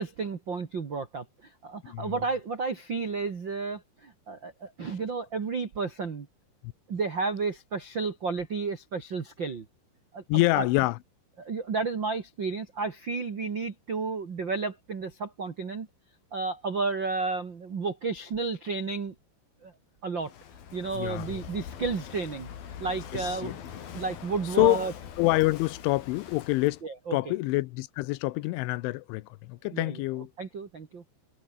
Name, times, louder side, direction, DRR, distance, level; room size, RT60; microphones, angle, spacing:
voice 1, 0.0-6.3 6.9-9.6 10.1-10.7 11.4-15.9 16.3-19.1 19.6-19.7 20.0-20.3 20.7-23.6 23.9-24.9 26.8-27.3 29.7-30.0 30.4-31.0, right 4 dB, 75° right, 1.0 m, -32 dB
voice 2, 10.3-11.0 20.9-21.4 23.1-23.6 24.6-24.9 25.2-26.8 27.1-30.3, left 20 dB, 85° left, 3.1 m, -26 dB
Walk footsteps / Wind / Waves surf, 20.2-26.8, left 8 dB, 55° left, 4.1 m, -43 dB
omnidirectional pair, 5.6 m